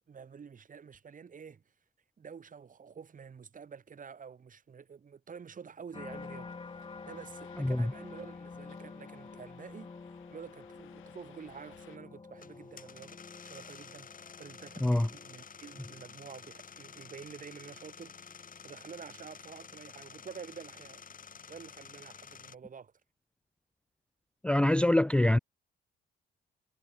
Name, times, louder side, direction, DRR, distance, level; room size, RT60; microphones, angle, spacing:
voice 1, 0.0-1.7 2.2-6.5 7.1-21.0 21.5-22.9, right 6 dB, 40° right, 2.8 m, -49 dB
sound 1, 5.9-21.1 21.6-22.1, left 4 dB, 25° left, 1.7 m, -50 dB
sound 2, 6.1-12.0, left 15 dB, 90° left, 5.1 m, -60 dB
sound 3, 12.4-22.6, left 6 dB, 45° left, 4.9 m, -51 dB
voice 2, 24.4-25.4, left 1 dB, 5° left, 0.5 m, -24 dB
cardioid pair, 90°, 20 cm